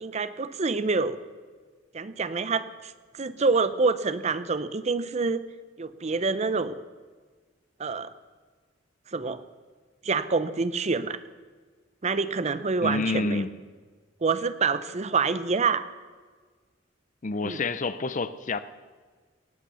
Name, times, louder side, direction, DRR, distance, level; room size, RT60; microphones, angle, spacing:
voice 1, 0.0-1.2 1.9-5.4 5.8-6.8 7.8-8.1 9.1-9.4 10.0-11.2 12.0-13.5 14.2-15.9 17.4-17.6, right 4 dB, 35° right, 14 dB, 0.6 m, -27 dB
voice 2, 12.8-13.5 17.2-18.6, left 3 dB, 40° left, 14 dB, 0.6 m, -28 dB
18.0 x 8.9 x 7.0 m, 1.5 s
head